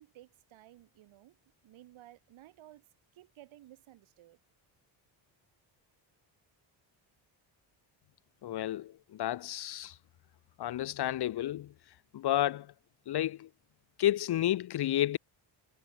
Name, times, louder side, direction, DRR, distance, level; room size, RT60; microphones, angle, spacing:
voice 1, 0.0-4.4, right 14 dB, 80° right, 3.0 m, -56 dB
voice 2, 8.4-9.9 10.6-11.7 12.1-12.7 13.1-13.5 14.0-15.2, left 13 dB, 55° left, 0.9 m, -31 dB
cardioid pair, 140°, 47 cm